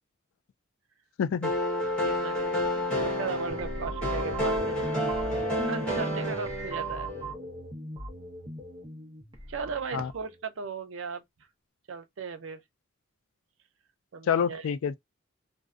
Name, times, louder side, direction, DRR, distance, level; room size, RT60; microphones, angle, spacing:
voice 1, 1.2-1.5 9.9-10.1 14.3-14.9, left 7 dB, 80° left, 0.3 m, -27 dB
sound 1, 1.4-7.3, left 1 dB, 5° left, 0.9 m, -30 dB
voice 2, 2.0-4.8 5.6-7.1 9.5-11.2 11.9-12.6 14.1-14.6, right 5 dB, 70° right, 0.5 m, -37 dB
sound 2, 3.5-10.4, equal, 25° right, 0.7 m, -37 dB
2.5 x 2.1 x 2.3 m
head